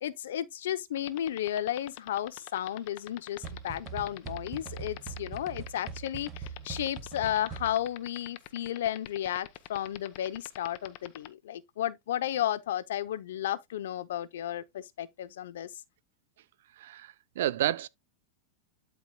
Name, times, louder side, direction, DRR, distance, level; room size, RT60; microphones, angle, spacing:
voice 1, 0.0-15.7, left 11 dB, 75° left, 0.7 m, -33 dB
sound 1, 1.0-11.3, left 22 dB, 45° left, 0.8 m, -43 dB
sound 2, 3.4-8.0, right 6 dB, 20° right, 1.5 m, -42 dB
voice 2, 16.8-17.9, right 13 dB, 70° right, 0.6 m, -30 dB
12.5 x 4.6 x 2.3 m
supercardioid pair, 145°, 0 cm